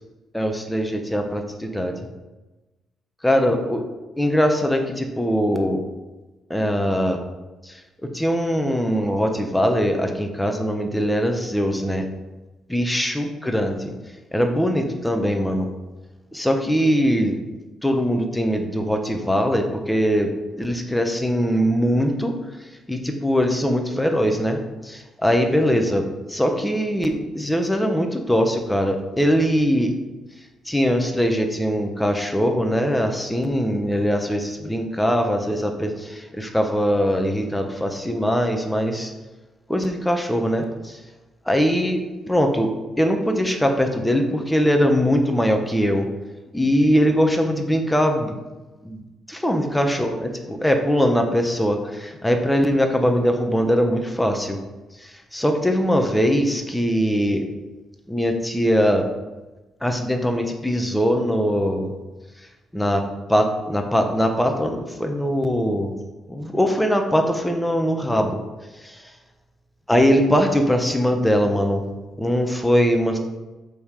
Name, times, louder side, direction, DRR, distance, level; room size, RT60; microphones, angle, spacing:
voice 1, 0.3-2.1 3.2-3.8 4.2-5.8 6.5-7.2 7.6-12.0 12.7-13.9 14.3-15.7 16.3-17.4 17.8-20.3 20.6-22.4 22.9-29.9 30.7-39.1 39.7-41.0 41.4-42.0 42.3-46.1 46.5-48.3 48.8-54.6 55.0-57.4 58.1-59.0 59.8-61.9 62.7-63.0 63.3-65.9 66.3-68.4 68.7-69.1 69.9-71.8 72.2-73.2, equal, 5° left, 4 dB, 1.1 m, -21 dB
7.0 x 5.5 x 5.0 m, 1.1 s
cardioid pair, 90°, 0 cm